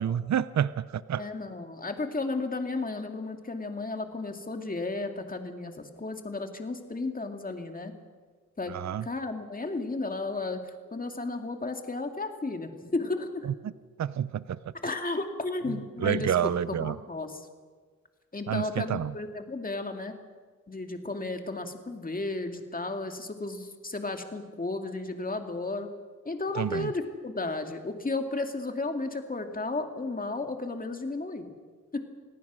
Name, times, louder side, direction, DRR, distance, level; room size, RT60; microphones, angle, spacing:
voice 1, 0.0-1.2 8.7-9.1 13.4-13.7 14.0-14.6 16.0-17.0 18.5-19.1 26.6-26.9, right 9 dB, 60° right, 16 dB, 0.6 m, -29 dB
voice 2, 1.2-7.9 8.6-8.7 9.0-10.6 10.9-13.5 14.8-17.5 18.3-20.1 20.7-25.9 26.3-31.5 31.9-32.0, left 3 dB, 25° left, 5 dB, 2.3 m, -33 dB
28.0 x 18.0 x 6.3 m, 1.5 s
cardioid pair, 85°, 32 cm